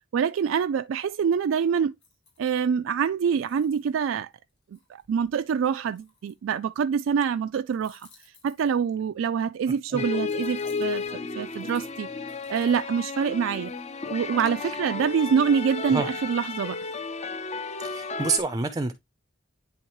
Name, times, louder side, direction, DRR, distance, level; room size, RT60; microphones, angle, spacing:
voice 1, 0.1-1.9 2.4-4.3 4.9-8.1 8.4-11.0 11.4-12.1 12.5-13.7 14.1-16.8, right 7 dB, 75° right, 0.3 m, -25 dB
sound 1, 1.7-2.9 3.3-6.7 7.7-9.1 10.2-12.9 13.4-14.7, left 4 dB, 75° left, 5.3 m, -59 dB
sound 2, 10.0-18.4, left 4 dB, 35° left, 0.5 m, -33 dB
voice 2, 17.8-18.9, right 4 dB, 20° right, 0.5 m, -27 dB
9.8 x 3.5 x 3.0 m
head